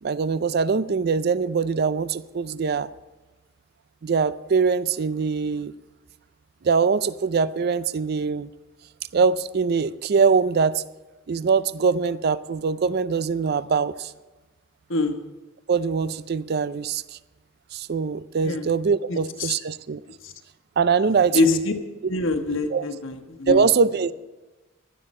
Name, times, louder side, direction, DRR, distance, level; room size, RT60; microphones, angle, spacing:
voice 1, 0.0-2.9 4.0-5.7 6.6-8.5 9.1-10.8 11.3-14.1 15.7-17.2 17.7-20.0 20.8-21.6 22.0-22.1 22.7-22.9 23.5-24.1, right 5 dB, 50° right, 16 dB, 0.4 m, -23 dB
voice 2, 19.1-19.5 20.2-20.3 21.3-21.7 22.1-23.7, left 2 dB, 60° left, 6 dB, 1.3 m, -24 dB
16.5 x 12.5 x 4.3 m, 1.2 s
head